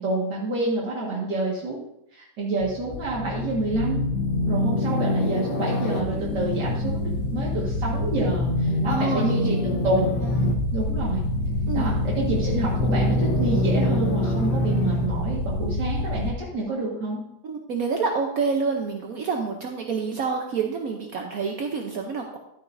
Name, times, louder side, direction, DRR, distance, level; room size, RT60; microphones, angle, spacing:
voice 1, 0.0-1.8 2.1-4.0 4.5-10.2 10.7-11.2 11.7-17.2, right 2 dB, 85° right, -5 dB, 2.5 m, -28 dB
sound 1, 2.6-16.3, left 1 dB, 85° left, 1.7 m, -25 dB
voice 2, 8.9-9.5 10.2-10.3 11.7-12.0 17.4-22.4, right 5 dB, 60° right, 2 dB, 1.3 m, -28 dB
12.0 x 9.0 x 2.7 m, 0.83 s
omnidirectional pair, 1.8 m